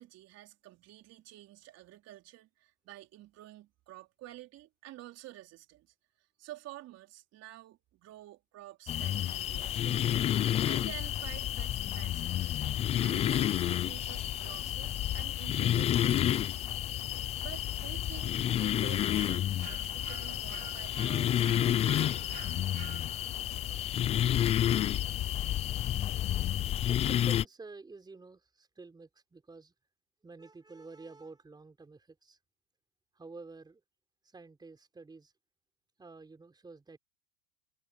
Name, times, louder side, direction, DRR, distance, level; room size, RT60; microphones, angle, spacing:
voice 1, 0.0-12.5 13.0-16.7 17.4-22.0, right 15 dB, 35° right, 4.0 m, -50 dB
sound 1, 8.9-27.4, left 11 dB, 15° left, 0.4 m, -30 dB
sound 2, 19.1-23.5, right 12 dB, 90° right, 3.7 m, -50 dB
voice 2, 26.9-29.7 30.2-32.4 33.1-33.8 34.2-35.3 36.0-37.0, right 3 dB, 10° right, 4.2 m, -50 dB
supercardioid pair, 135°, 42 cm